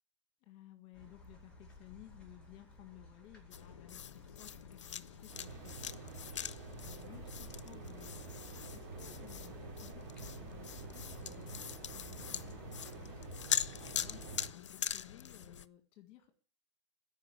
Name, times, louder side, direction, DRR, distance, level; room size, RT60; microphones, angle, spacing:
voice 1, 0.4-16.4, left 14 dB, 40° left, 7 dB, 1.8 m, -58 dB
sound 1, 0.9-13.3, left 3 dB, 5° left, 4.5 m, -58 dB
sound 2, 3.5-15.6, left 9 dB, 85° left, 0.6 m, -42 dB
sound 3, 5.3-14.5, right 4 dB, 50° right, 3.4 m, -48 dB
13.0 x 5.5 x 9.2 m, 0.42 s
hypercardioid pair, 120°, 15 cm